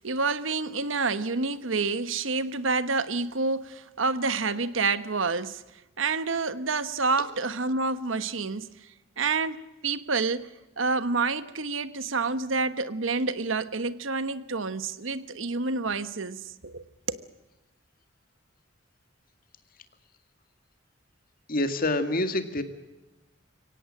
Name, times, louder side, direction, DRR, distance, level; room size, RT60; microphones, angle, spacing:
voice 1, 0.0-5.6 6.0-8.7 9.2-17.2, right 4 dB, 75° right, 1.2 m, -28 dB
voice 2, 21.5-22.6, left 1 dB, 45° left, 2.1 m, -26 dB
23.5 x 17.5 x 8.8 m
head